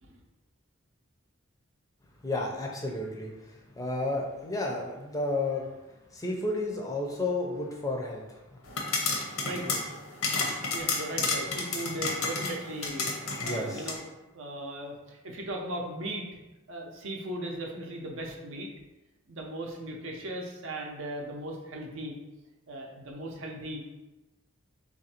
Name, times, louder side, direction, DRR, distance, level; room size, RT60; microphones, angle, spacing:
voice 1, 2.2-5.7 6.1-8.6 13.4-14.0, left 2 dB, 15° left, -1 dB, 0.5 m, -32 dB
sound 1, 8.7-14.0, left 3 dB, 80° left, 0.7 m, -31 dB
voice 2, 9.4-9.8 10.7-14.0 14.3-16.3 16.7-18.7 19.3-22.1 22.7-23.8, right 1 dB, 65° right, 0 dB, 0.7 m, -37 dB
3.3 x 2.6 x 4.2 m, 1.1 s
head